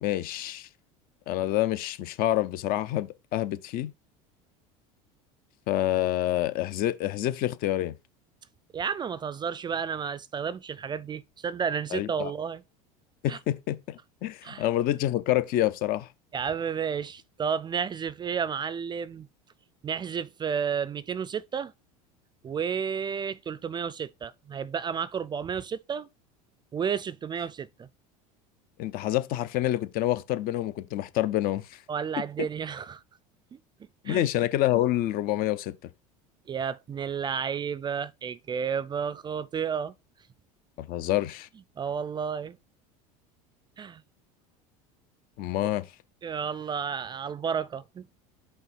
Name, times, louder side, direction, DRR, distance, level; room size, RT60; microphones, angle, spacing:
voice 1, 0.0-0.7 1.3-3.9 5.7-7.9 11.9-12.3 13.2-16.1 28.8-31.8 34.0-35.7 40.8-41.5 45.4-45.9, left 14 dB, 55° left, 0.7 m, -27 dB
voice 2, 8.7-12.6 13.3-13.4 14.4-14.7 16.3-19.3 19.8-21.7 22.4-26.1 26.7-27.9 31.9-33.0 34.1-34.3 36.5-39.9 41.8-42.6 43.8-44.0 46.2-48.2, right 7 dB, 25° right, 0.4 m, -31 dB
5.6 x 3.4 x 5.6 m
hypercardioid pair, 95°, 18 cm